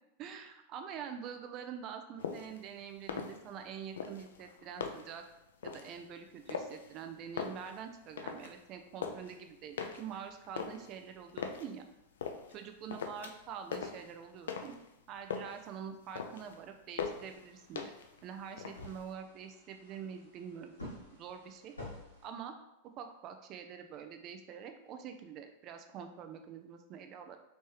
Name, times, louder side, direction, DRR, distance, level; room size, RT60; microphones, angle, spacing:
voice 1, 0.2-5.2 5.6-11.8 12.5-14.7 15.1-17.9 18.2-20.7 21.1-21.7 22.2-22.5 23.0-27.4, right 7 dB, 35° right, 6 dB, 0.3 m, -45 dB
sound 1, 2.2-2.6 3.0-3.7 4.0-5.2 5.6-6.0 6.5-7.0 7.3-8.6 8.8-9.3 9.8-11.7 12.2-12.6 12.9-13.5 13.7-14.9 15.1-15.7 16.0-16.6 17.0-17.4 17.8-18.2 18.5-19.1, left 6 dB, 65° left, 0.4 m, -40 dB
sound 2, 17.0-22.3, left 1 dB, 80° left, 1.2 m, -51 dB
3.2 x 3.1 x 3.0 m, 0.87 s
figure-of-eight pair, 90°, 0 cm